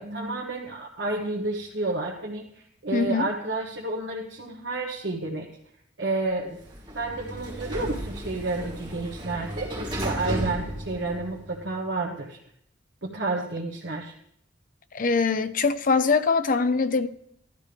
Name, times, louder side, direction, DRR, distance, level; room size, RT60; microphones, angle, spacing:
voice 1, 0.0-5.5 6.0-6.6 6.9-12.4 13.0-14.1, right 2 dB, 70° right, 1.4 m, -30 dB
voice 2, 2.9-3.3 14.9-17.1, left 4 dB, 50° left, 0.6 m, -23 dB
Sliding door, 6.5-11.7, equal, 25° right, 4.1 m, -34 dB
15.0 x 12.0 x 3.5 m
head